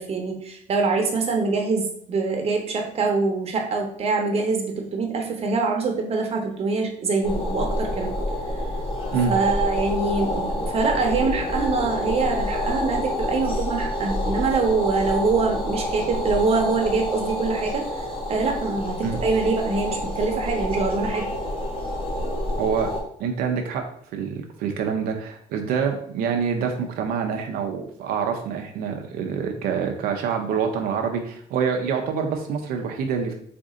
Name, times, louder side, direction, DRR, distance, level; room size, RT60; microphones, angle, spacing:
voice 1, 0.0-8.2 9.3-21.3, right 4 dB, 40° right, 2 dB, 0.9 m, -24 dB
sound 1, 7.2-23.0, left 1 dB, 35° left, 1.4 m, -28 dB
voice 2, 22.6-22.9 23.2-33.3, right 6 dB, 80° right, 4 dB, 0.6 m, -26 dB
4.2 x 2.6 x 3.6 m, 0.64 s
cardioid pair, 110°, 15 cm